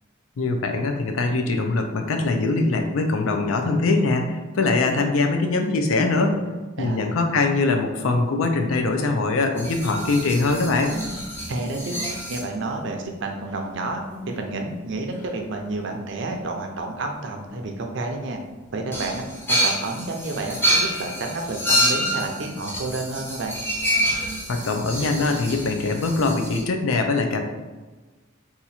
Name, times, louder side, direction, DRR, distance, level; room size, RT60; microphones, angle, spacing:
voice 1, 0.4-6.4 6.8-10.9 24.5-27.4, left 3 dB, 80° left, 4 dB, 0.5 m, -22 dB
voice 2, 6.8-7.1 11.5-18.4 18.7-23.6, right 2 dB, 60° right, 3 dB, 0.5 m, -30 dB
sound 1, 9.6-12.5 13.7-13.8 14.1-14.4 15.1-15.3 18.9-26.6, equal, 10° left, 0.4 m, -27 dB
2.8 x 2.4 x 4.1 m, 1.3 s
head